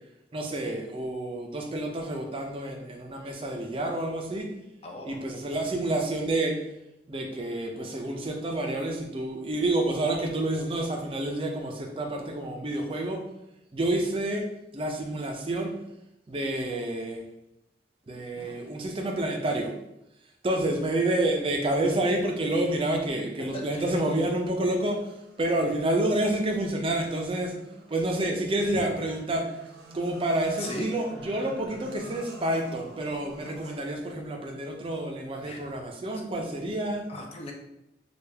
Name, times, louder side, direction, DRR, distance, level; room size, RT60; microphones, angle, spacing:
voice 1, 0.3-4.5 5.0-6.6 7.1-13.2 13.7-14.5 14.7-15.7 16.3-17.2 18.1-19.7 20.4-25.0 25.4-27.5 27.9-29.5 29.9-37.0, right 1 dB, 30° right, 2 dB, 0.5 m, -28 dB
voice 2, 4.8-5.2 5.5-5.7 23.4-23.9 28.6-28.8 30.6-30.9 35.4-35.7 37.1-37.5, left 1 dB, 35° left, 2 dB, 0.5 m, -38 dB
sound 1, 24.9-34.0, right 1 dB, 75° right, 0.7 m, -48 dB
3.3 x 2.4 x 3.3 m, 0.84 s
head